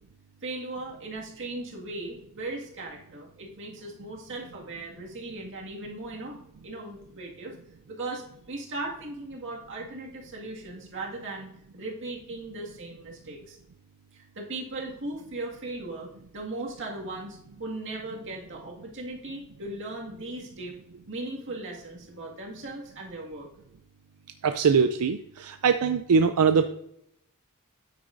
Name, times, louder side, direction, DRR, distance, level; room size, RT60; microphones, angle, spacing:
voice 1, 0.4-7.6 7.9-13.6 14.1-20.8 21.1-23.5, right 2 dB, 55° right, -2 dB, 2.0 m, -38 dB
voice 2, 24.4-26.7, right 5 dB, 85° right, 8 dB, 0.4 m, -22 dB
9.4 x 8.6 x 2.6 m, 0.76 s
head